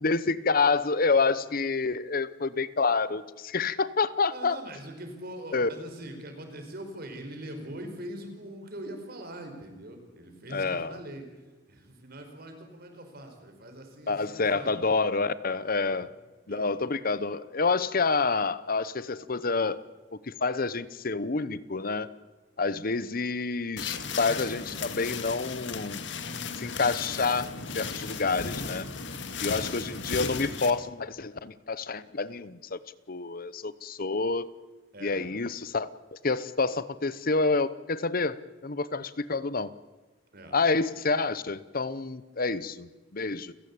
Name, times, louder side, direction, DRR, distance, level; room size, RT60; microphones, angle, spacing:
voice 1, 0.0-4.6 5.5-5.7 10.5-11.0 14.1-16.1 16.5-19.8 20.1-22.1 22.6-26.0 26.5-28.9 29.4-32.8 33.1-34.5 35.0-39.7 40.5-43.5, left 4 dB, 50° left, 16 dB, 0.9 m, -28 dB
voice 2, 4.3-11.3 11.7-15.2 16.5-16.7 34.9-35.3 40.3-40.6, right 1 dB, 55° right, 5 dB, 5.1 m, -42 dB
sound 1, 23.8-30.7, left 5 dB, 70° left, 2.0 m, -35 dB
29.5 x 16.0 x 8.7 m, 1.2 s
head